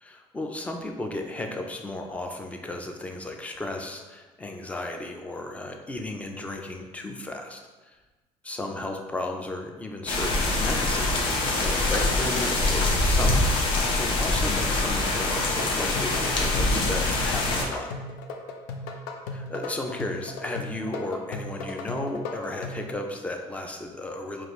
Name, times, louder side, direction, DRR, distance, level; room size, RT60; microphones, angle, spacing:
voice 1, 0.0-8.0 8.4-17.9 19.3-24.5, left 2 dB, 10° left, 3 dB, 0.4 m, -34 dB
sound 1, 10.1-17.6, left 2 dB, 45° left, 0.8 m, -24 dB
sound 2, 15.2-22.9, left 3 dB, 90° left, 0.5 m, -37 dB
4.7 x 2.5 x 3.0 m, 1.2 s
cardioid pair, 130°, 12 cm